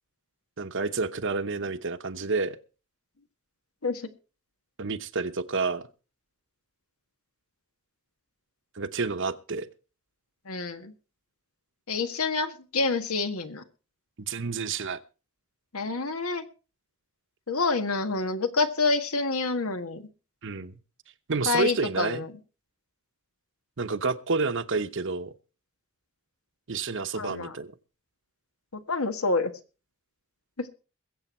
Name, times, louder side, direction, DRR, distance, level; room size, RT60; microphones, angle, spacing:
voice 1, 0.6-2.6 4.8-5.9 8.7-9.7 14.2-15.0 20.4-20.8 21.3-22.2 23.8-25.3 26.7-27.7, right 4 dB, 60° right, 11 dB, 1.0 m, -29 dB
voice 2, 10.5-10.9 11.9-13.6 15.7-16.5 17.5-20.1 21.5-22.3 27.1-27.6 28.7-29.5 30.6-30.7, left 3 dB, 90° left, 9 dB, 1.7 m, -28 dB
21.5 x 8.0 x 4.4 m, 0.34 s
head